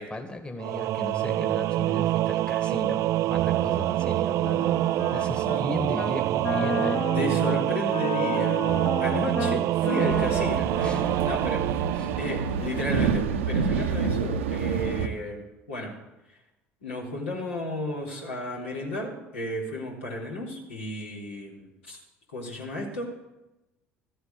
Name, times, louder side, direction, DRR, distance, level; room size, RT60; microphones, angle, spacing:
voice 1, 0.1-7.1 10.8-11.1 11.9-12.2, left 2 dB, 15° left, 5 dB, 1.8 m, -37 dB
Singing / Musical instrument, 0.6-13.1, right 15 dB, 50° right, 0.4 m, -26 dB
Wind instrument woodwind instrument, 4.5-5.6 5.9-6.2 6.4-11.7, left 5 dB, 40° left, 1.2 m, -33 dB
voice 2, 7.2-11.7 12.2-15.9 16.3-16.4 16.8-22.0 22.3-23.1, left 1 dB, 75° left, -3 dB, 3.5 m, -33 dB
sound 1, 10.1-15.1, right 6 dB, 75° right, 0.8 m, -28 dB
14.0 x 8.0 x 8.5 m, 0.97 s
figure-of-eight pair, 60°, 7 cm